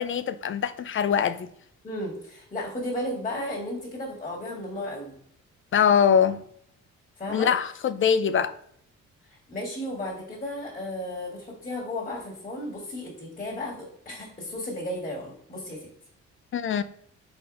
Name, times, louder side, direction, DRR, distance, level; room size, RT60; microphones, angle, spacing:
voice 1, 0.0-1.4 5.7-6.4 7.3-8.5 16.5-16.8, left 7 dB, 45° left, 0.4 m, -23 dB
voice 2, 1.8-5.1 7.2-7.5 9.3-15.9, left 1 dB, 25° left, 2.1 m, -34 dB
4.3 x 4.2 x 5.3 m
cardioid pair, 90°, 30 cm